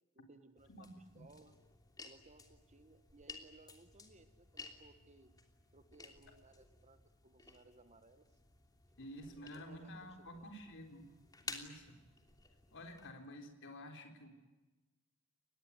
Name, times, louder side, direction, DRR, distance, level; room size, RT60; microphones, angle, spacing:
voice 1, 0.1-1.5 2.0-5.3 5.7-8.3 9.3-10.5, right 2 dB, 35° right, 10 dB, 1.5 m, -63 dB
sound 1, 0.6-13.1, left 4 dB, 20° left, 3.1 m, -55 dB
voice 2, 9.0-11.1 11.4-12.0 12.7-14.3, equal, 60° left, 4 dB, 4.0 m, -51 dB
25.0 x 20.5 x 9.7 m, 1.1 s
head